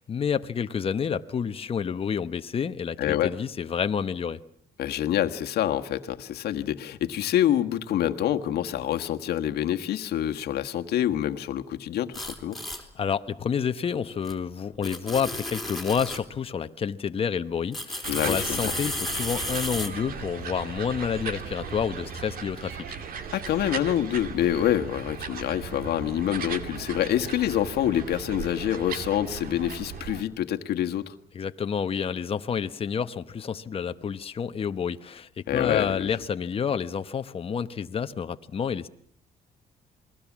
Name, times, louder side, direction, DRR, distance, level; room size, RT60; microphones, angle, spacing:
voice 1, 0.0-4.4 12.7-22.8 31.3-38.9, left 7 dB, 35° left, 1.0 m, -29 dB
voice 2, 3.0-3.3 4.8-12.6 18.1-18.7 23.3-31.1 35.5-36.1, left 11 dB, 75° left, 1.5 m, -26 dB
sound 1, 12.1-12.8 14.2-14.3 14.8-16.2 17.7-19.9, left 1 dB, ahead, 3.7 m, -33 dB
sound 2, 18.0-30.2, right 6 dB, 60° right, 2.3 m, -37 dB
28.5 x 21.0 x 7.3 m
cardioid pair, 115°, 17 cm